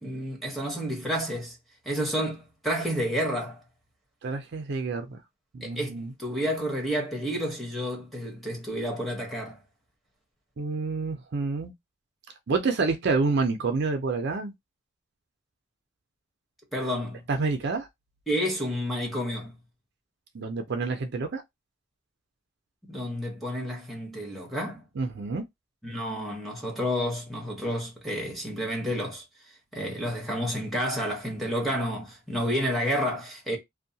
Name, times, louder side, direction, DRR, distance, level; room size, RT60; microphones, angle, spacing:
voice 1, 0.0-1.6 1.9-3.6 5.6-9.6 16.7-17.2 18.3-19.6 22.8-24.9 25.8-29.2 29.7-33.6, equal, ahead, 0.9 m, -30 dB
voice 2, 4.2-5.2 5.5-6.1 10.6-11.7 12.5-14.5 17.3-17.9 20.3-21.4 25.0-25.4, right 4 dB, 55° right, 0.5 m, -28 dB
2.7 x 2.1 x 2.6 m
head